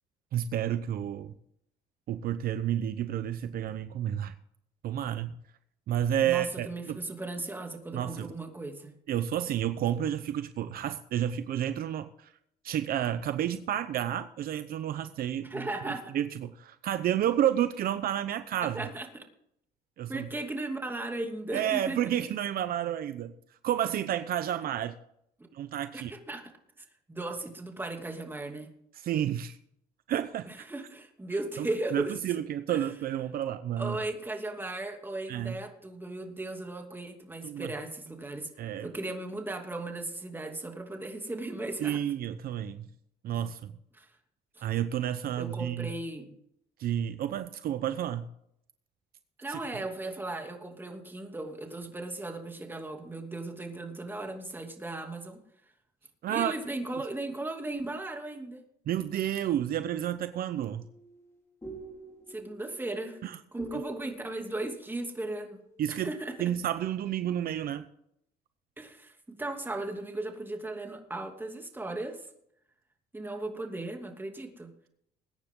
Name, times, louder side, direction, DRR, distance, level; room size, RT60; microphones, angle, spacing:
voice 1, 0.3-1.3 2.1-4.3 4.8-5.3 5.9-7.0 7.9-8.3 9.1-12.3 12.6-15.7 16.1-18.9 20.0-20.3 21.5-23.3 23.6-25.0 25.5-26.1 29.0-29.6 30.1-30.6 31.6-34.0 35.3-35.6 37.4-37.7 38.6-38.9 41.8-42.9 43.2-43.7 44.6-45.9 46.8-48.3 49.5-49.6 56.2-56.5 58.9-60.8 63.2-63.4 63.7-63.8 65.8-66.1 66.4-67.9, right 11 dB, 60° right, 11 dB, 0.8 m, -30 dB
voice 2, 6.2-8.9 15.4-16.1 18.7-19.2 20.1-22.0 25.9-26.5 26.8-28.7 30.5-32.1 32.7-32.9 33.8-42.0 43.9-44.1 44.6-44.7 45.4-46.4 49.4-55.4 56.3-58.6 62.3-63.2 63.5-65.6 65.9-66.3 68.8-72.3 73.1-74.7, right 2 dB, 10° right, 3 dB, 2.8 m, -37 dB
sound 1, 60.5-66.2, equal, 15° left, 4.9 m, -48 dB
21.0 x 9.7 x 3.8 m, 0.72 s
cardioid pair, 110°, 17 cm